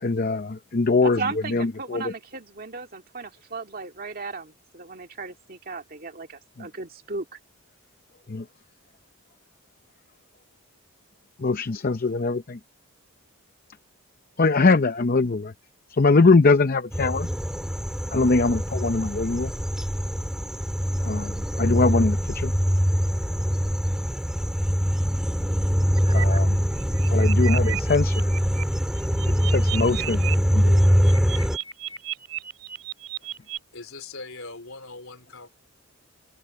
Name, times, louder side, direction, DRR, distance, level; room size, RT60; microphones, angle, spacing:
voice 1, 0.0-1.2 1.5-2.1 8.3-8.4 11.4-12.6 14.4-15.5 16.0-17.3 18.1-19.5 21.0-22.5 26.1-26.6 27.1-28.3 29.3-30.2 30.5-30.8, left 3 dB, 40° left, 0.6 m, -22 dB
voice 2, 1.0-7.3, right 4 dB, 40° right, 2.1 m, -35 dB
sound 1, 16.9-31.6, equal, 5° right, 2.6 m, -23 dB
sound 2, 26.0-26.4 26.8-28.6 29.0-30.4 30.6-33.6, right 12 dB, 90° right, 3.1 m, -34 dB
voice 3, 33.7-35.5, left 3 dB, 70° left, 4.2 m, -40 dB
head